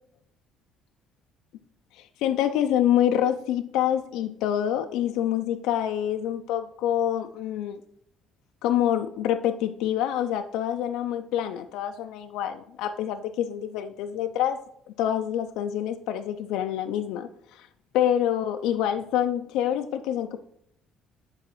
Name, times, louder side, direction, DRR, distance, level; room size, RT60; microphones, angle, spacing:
voice 1, 1.9-7.8 8.6-14.6 15.0-17.7 17.9-20.4, left 10 dB, 85° left, 6 dB, 0.4 m, -26 dB
9.7 x 4.0 x 3.0 m, 0.72 s
cardioid pair, 140°, 0 cm